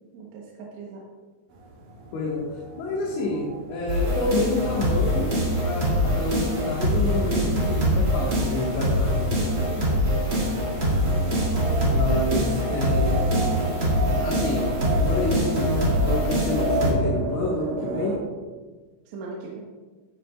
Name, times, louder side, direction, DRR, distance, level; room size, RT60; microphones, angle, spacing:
voice 1, 0.1-1.0 9.6-9.9 12.1-12.2 19.1-19.6, right 4 dB, 75° right, -3 dB, 3.4 m, -38 dB
sound 1, 1.5-18.2, right 2 dB, 55° right, 2.8 m, -34 dB
voice 2, 2.1-9.2 11.9-13.2 14.2-14.7 15.0-15.8 16.0-18.2, left 2 dB, 70° left, -5 dB, 3.9 m, -28 dB
sound 2, 3.9-16.9, equal, 30° right, 2.5 m, -24 dB
17.5 x 9.0 x 2.4 m, 1.3 s
omnidirectional pair, 5.5 m